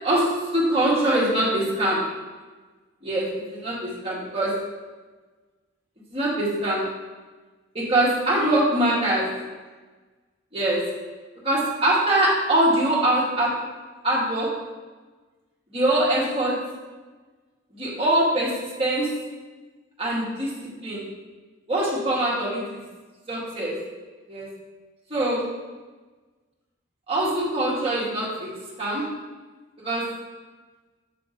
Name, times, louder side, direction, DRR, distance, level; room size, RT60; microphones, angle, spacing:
voice 1, 0.0-2.0 3.0-4.5 6.1-6.9 7.7-9.3 10.5-10.8 11.4-13.5 14.0-14.5 15.7-16.6 17.7-19.1 20.0-20.5 20.8-21.0 21.7-22.8 23.3-23.7 24.3-24.5 25.1-25.4 27.1-28.5 28.8-29.0 29.8-30.0, right 1 dB, 30° right, -7 dB, 2.0 m, -23 dB
7.0 x 3.5 x 5.2 m, 1.3 s
head